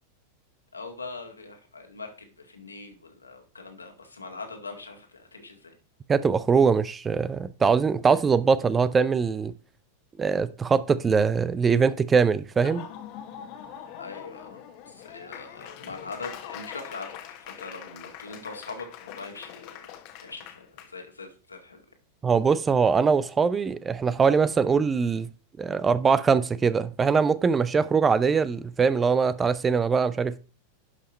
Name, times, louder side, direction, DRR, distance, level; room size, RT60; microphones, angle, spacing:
voice 1, 0.7-5.8 14.0-17.1 17.4-19.9 20.2-21.8, left 3 dB, 80° left, 2.0 m, -41 dB
voice 2, 6.1-9.5 10.2-12.9 22.2-25.3 25.6-30.4, right 5 dB, 20° right, 0.5 m, -22 dB
Laughter / Applause, 12.5-20.9, left 10 dB, 45° left, 1.3 m, -43 dB
11.0 x 5.7 x 4.3 m
figure-of-eight pair, 90°, 0 cm